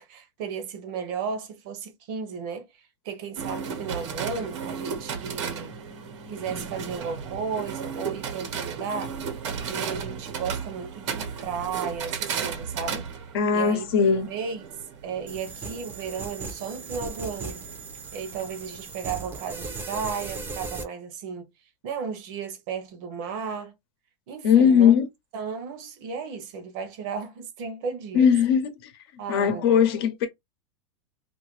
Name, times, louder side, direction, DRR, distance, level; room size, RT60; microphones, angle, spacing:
voice 1, 0.0-5.7 6.3-13.1 13.5-13.9 14.3-14.7 15.0-17.7 18.1-21.5 21.8-23.8 24.3-24.9 25.3-28.3 29.2-29.9, right 6 dB, 45° right, 0.8 m, -34 dB
sound 1, 3.4-19.6, right 6 dB, 80° right, 1.2 m, -35 dB
voice 2, 13.3-14.3 24.4-25.1 28.1-28.7 29.3-30.3, left 7 dB, 55° left, 0.8 m, -19 dB
sound 2, 15.3-20.8, right 4 dB, 15° right, 0.6 m, -37 dB
2.8 x 2.6 x 3.1 m
supercardioid pair, 155°, 15 cm